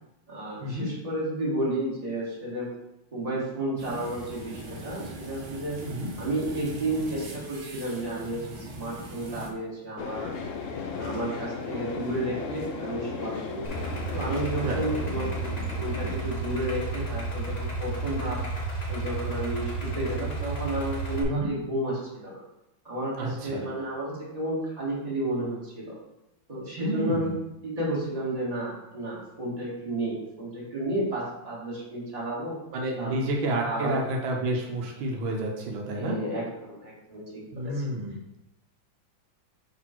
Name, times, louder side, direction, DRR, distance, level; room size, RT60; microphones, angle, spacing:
voice 1, 0.3-2.7 3.1-5.8 6.2-10.3 11.0-13.7 14.1-18.4 18.9-22.4 22.8-26.0 26.5-27.3 27.6-32.6 33.0-34.0 36.0-37.8, right 1 dB, 20° right, -6 dB, 2.0 m, -32 dB
sound 1, 3.8-9.5, right 1 dB, 65° right, 1.6 m, -41 dB
sound 2, 10.0-16.2, left 5 dB, 70° left, 0.7 m, -36 dB
Idling, 13.6-21.2, right 3 dB, 30° left, 0.8 m, -32 dB
voice 2, 23.2-23.7 26.8-27.3 32.7-36.1 37.5-38.2, right 1 dB, 80° right, 0 dB, 1.7 m, -30 dB
6.2 x 4.2 x 4.4 m, 0.90 s
omnidirectional pair, 2.1 m